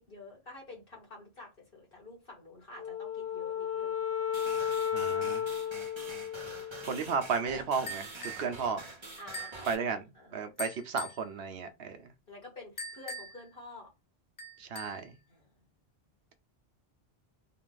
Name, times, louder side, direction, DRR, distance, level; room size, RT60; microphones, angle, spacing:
voice 1, 0.0-4.0 9.2-10.4 12.3-13.9 15.3-15.6, left 2 dB, 60° left, 1.9 m, -49 dB
Wind instrument woodwind instrument, 2.8-7.2, left 9 dB, 75° left, 1.1 m, -34 dB
sound 1, 4.3-9.7, right 3 dB, 30° right, 1.0 m, -46 dB
voice 2, 4.9-5.4 6.8-8.8 9.7-10.0 10.3-12.0 14.6-15.1, right 5 dB, 70° right, 0.9 m, -33 dB
sound 2, 7.9-8.5 9.3-9.7 10.6-11.2 12.8-13.5 14.4-15.1, equal, 30° left, 0.4 m, -42 dB
3.8 x 2.4 x 3.8 m
omnidirectional pair, 1.1 m